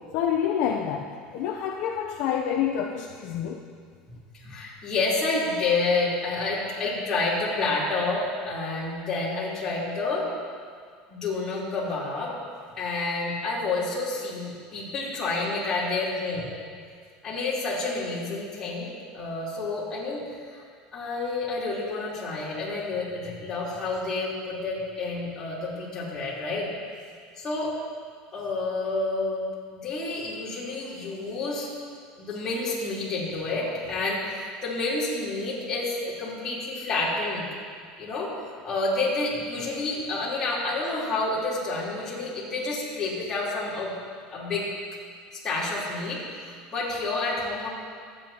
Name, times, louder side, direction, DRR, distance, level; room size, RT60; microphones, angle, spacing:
voice 1, 0.1-3.6, left 8 dB, 55° left, 1 dB, 0.8 m, -28 dB
voice 2, 4.3-10.2 11.1-12.3 12.8-16.5 17.2-20.2 20.5-20.6 20.9-26.7 27.4-27.7 28.3-31.7 32.2-37.4 38.0-43.9 44.3-44.7 45.4-47.7, left 3 dB, 20° left, -8 dB, 3.8 m, -29 dB
23.5 x 9.4 x 3.0 m, 2.1 s
cardioid pair, 160°, 3 cm